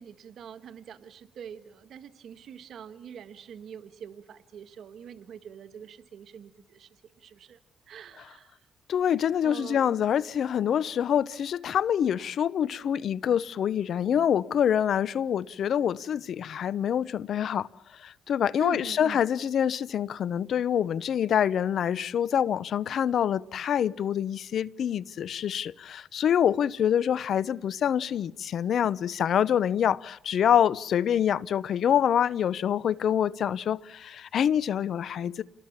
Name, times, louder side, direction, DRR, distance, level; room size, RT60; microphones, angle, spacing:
voice 1, 0.0-6.9 7.2-7.6 7.9-8.6 9.4-10.0 16.1-16.2 18.6-19.2, right 8 dB, 65° right, 1.7 m, -44 dB
voice 2, 8.9-17.7 18.0-35.4, left 9 dB, 65° left, 0.8 m, -26 dB
28.5 x 20.5 x 7.4 m
cardioid pair, 90°, 0 cm